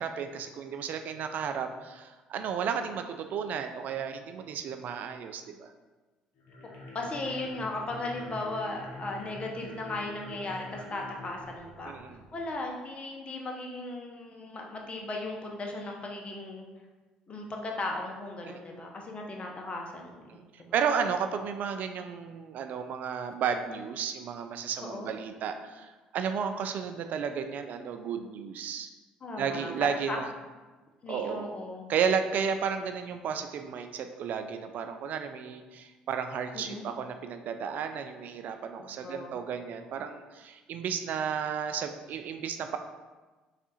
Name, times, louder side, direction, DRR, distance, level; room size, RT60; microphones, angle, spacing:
voice 1, 0.0-5.7 11.9-12.2 18.4-18.6 20.3-28.9 29.4-30.3 31.1-31.5 31.9-42.8, right 7 dB, 60° right, 7 dB, 0.3 m, -33 dB
sound 1, 6.4-12.6, left 1 dB, 70° left, 0.8 m, -46 dB
voice 2, 6.8-11.9 12.3-16.6 17.3-20.7 24.8-25.1 29.2-30.2 31.0-31.9 36.5-36.9 38.8-39.4, left 2 dB, 35° left, 0 dB, 0.8 m, -37 dB
3.5 x 2.5 x 4.2 m, 1.2 s
hypercardioid pair, 60°, 3 cm